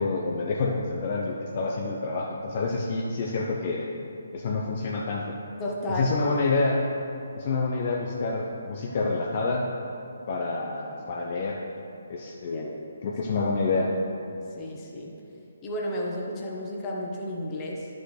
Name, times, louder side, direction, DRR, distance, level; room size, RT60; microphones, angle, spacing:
voice 1, 0.0-3.9 4.3-5.3 5.9-6.8 7.3-9.7 10.3-11.6 12.1-12.7 13.0-13.9, left 3 dB, 40° left, -2 dB, 0.7 m, -28 dB
voice 2, 5.6-6.1 12.5-12.6 14.6-15.1 15.6-17.9, left 1 dB, 20° left, -2 dB, 1.3 m, -32 dB
11.0 x 6.1 x 3.3 m, 2.7 s
figure-of-eight pair, 140°, 0 cm